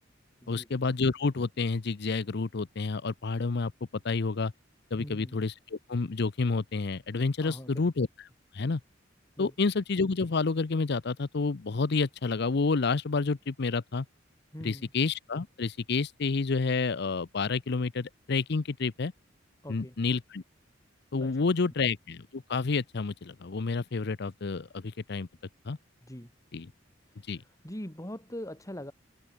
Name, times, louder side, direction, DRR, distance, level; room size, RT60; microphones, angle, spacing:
voice 1, 0.5-3.7 4.0-4.5 4.9-8.1 8.5-8.8 9.4-14.1 14.6-19.1 19.7-20.4 21.1-25.3 25.7-25.8 26.5-26.7 27.3-27.4, left 4 dB, 60° left, 0.7 m, -29 dB
voice 2, 5.0-5.4 7.4-7.9 9.4-9.5 14.5-14.9 19.6-19.9 21.2-21.4 26.0-26.3 27.1-28.9, equal, 15° left, 4.9 m, -42 dB
head